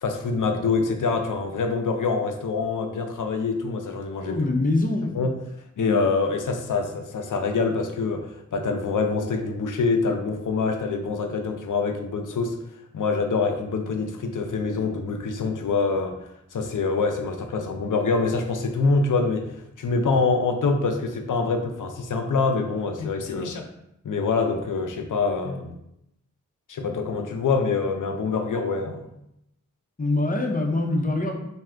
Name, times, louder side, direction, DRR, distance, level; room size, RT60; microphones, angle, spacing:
voice 1, 0.0-4.4 5.1-5.4 5.8-12.6 12.9-16.1 16.5-19.5 19.8-23.6 24.0-25.8 26.7-29.1, left 4 dB, 80° left, 5 dB, 0.5 m, -25 dB
voice 2, 4.3-5.1 30.0-31.3, left 2 dB, 25° left, 2 dB, 0.5 m, -24 dB
2.6 x 2.3 x 3.3 m, 0.81 s
wide cardioid pair, 40°, 31 cm